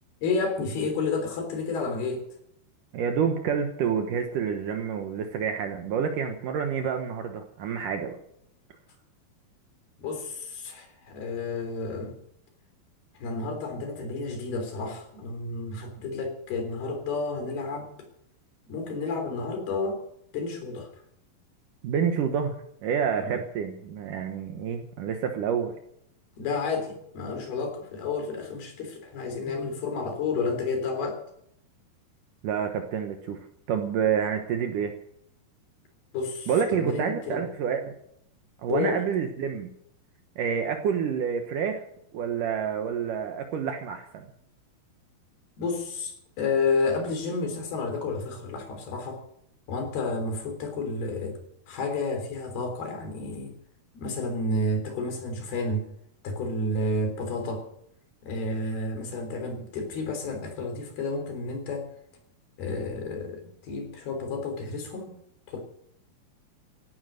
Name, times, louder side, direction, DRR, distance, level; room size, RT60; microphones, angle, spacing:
voice 1, 0.2-2.2 10.0-12.2 13.2-17.9 18.7-20.0 20.3-20.9 23.2-23.4 26.4-31.2 36.1-37.4 38.7-39.0 45.6-49.2 49.7-51.4 51.7-53.5 53.9-55.9 56.2-57.7 58.2-61.9 62.6-65.1 65.5-65.6, left 3 dB, 80° left, 5 dB, 5.5 m, -31 dB
voice 2, 2.9-8.2 21.8-22.6 22.8-25.7 32.4-33.4 33.7-34.9 36.5-37.9 38.6-39.7 40.4-41.8 42.1-44.3, right 7 dB, 65° right, 5 dB, 2.5 m, -28 dB
16.5 x 12.0 x 6.4 m, 0.72 s
omnidirectional pair, 4.4 m